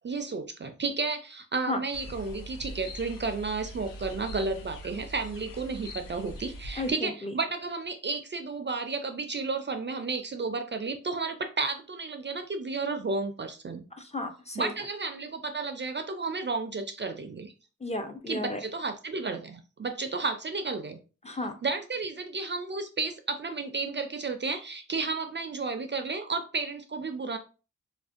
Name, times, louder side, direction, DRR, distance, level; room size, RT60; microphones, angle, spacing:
voice 1, 0.0-13.8 14.6-17.5 18.3-21.0 21.6-27.4, right 4 dB, 35° right, 7 dB, 0.4 m, -32 dB
sound 1, 1.9-6.9, equal, 75° left, 0.6 m, -42 dB
voice 2, 6.8-7.3 14.0-14.7 17.8-18.6 21.2-21.5, left 2 dB, 20° left, 5 dB, 0.5 m, -33 dB
2.5 x 2.1 x 2.4 m, 0.34 s
cardioid pair, 45°, 33 cm